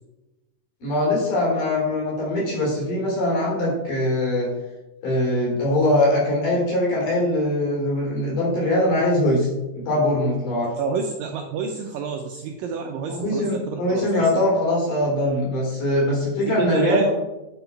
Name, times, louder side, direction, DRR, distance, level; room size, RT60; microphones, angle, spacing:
voice 1, 0.8-4.5 5.0-9.5 9.7-10.7 13.1-17.1, left 1 dB, 55° left, -4 dB, 4.4 m, -22 dB
voice 2, 10.8-14.1 16.5-17.1, right 5 dB, 80° right, 3 dB, 2.0 m, -28 dB
8.9 x 5.3 x 4.6 m, 1.0 s
omnidirectional pair, 4.6 m